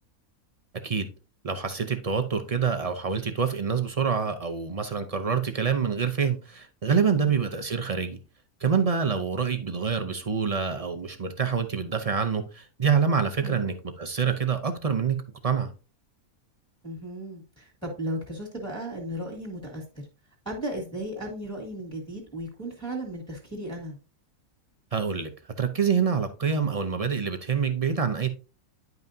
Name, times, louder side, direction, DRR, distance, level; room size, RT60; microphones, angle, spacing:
voice 1, 1.4-8.2 8.6-15.7 24.9-25.3 25.6-28.3, right 6 dB, 45° right, 0.4 m, -26 dB
voice 2, 16.8-19.8 20.5-24.0, right 1 dB, 5° left, 2.0 m, -35 dB
10.5 x 5.4 x 2.7 m
omnidirectional pair, 1.5 m